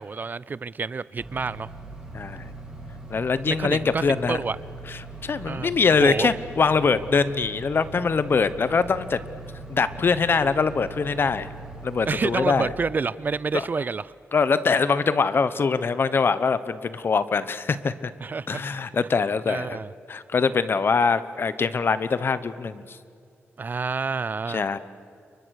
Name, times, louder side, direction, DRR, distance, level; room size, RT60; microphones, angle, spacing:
voice 1, 0.0-1.7 3.5-4.6 5.4-5.7 6.0-6.3 12.1-14.1 18.2-18.6 19.5-19.9 23.6-24.8, right 4 dB, 40° right, 19 dB, 0.5 m, -28 dB
sound 1, 1.2-12.6, right 2 dB, 10° right, 6.9 m, -40 dB
voice 2, 2.1-2.5 3.1-4.4 4.9-9.2 9.7-11.5 11.8-12.7 13.5-13.6 14.3-18.1 18.5-19.8 20.1-23.0 24.5-24.8, left 5 dB, 50° left, 14 dB, 1.1 m, -23 dB
29.5 x 23.5 x 6.6 m, 2.3 s
cardioid pair, 80°, 5 cm